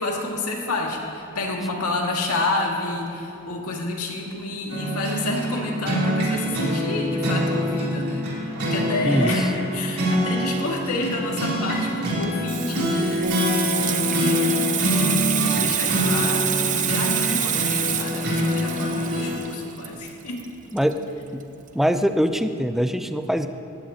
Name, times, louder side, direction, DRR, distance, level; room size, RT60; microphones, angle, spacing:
voice 1, 0.0-20.4, left 2 dB, 90° left, -1 dB, 2.1 m, -29 dB
sound 1, 4.7-19.4, equal, 75° right, 3.3 m, -25 dB
Water tap faucet / Sink (filling or washing), 12.1-21.4 21.7-22.0, right 9 dB, 35° right, 0.7 m, -27 dB
sound 2, 13.2-16.4, right 1 dB, 55° right, 2.8 m, -30 dB
voice 2, 20.7-21.0 21.3-21.4 21.7-23.5, equal, ahead, 8 dB, 0.5 m, -22 dB
18.0 x 15.0 x 2.9 m, 3.0 s
head